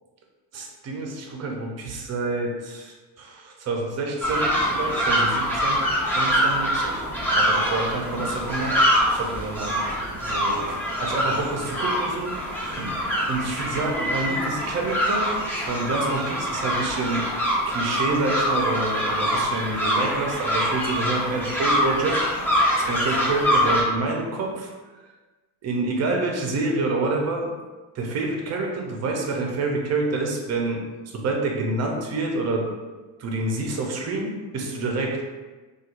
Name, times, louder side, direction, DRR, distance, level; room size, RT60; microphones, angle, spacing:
voice 1, 0.5-5.9 6.1-7.0 7.4-8.8 9.1-9.9 10.2-13.0 13.2-17.3 17.6-22.2 22.7-24.7 25.0-25.1 25.6-27.5 27.9-32.7 33.2-35.2, right 3 dB, 40° right, 1 dB, 0.7 m, -28 dB
sound 1, 4.2-23.8, equal, 5° left, 0.9 m, -24 dB
4.3 x 2.5 x 2.5 m, 1.3 s
cardioid pair, 115°, 41 cm